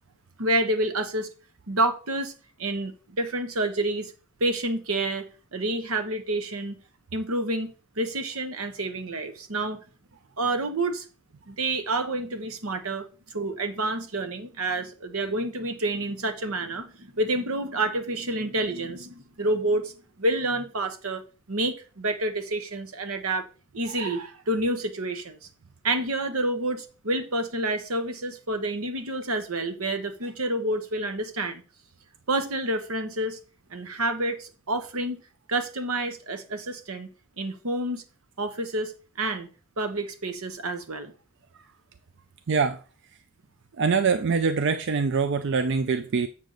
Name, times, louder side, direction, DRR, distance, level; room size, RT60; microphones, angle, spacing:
voice 1, 0.4-1.3 1.7-2.3 2.6-4.1 4.4-5.2 5.5-6.8 7.1-9.8 10.4-11.0 11.5-21.2 21.5-23.4 23.7-25.4 25.8-31.6 32.3-33.4 33.7-35.2 35.5-37.1 37.4-38.0 38.4-38.9 39.2-39.5 39.8-41.1, right 2 dB, 90° right, 1.2 m, -28 dB
voice 2, 42.5-42.8 43.8-46.3, right 5 dB, 55° right, 0.4 m, -24 dB
7.3 x 3.9 x 6.5 m
head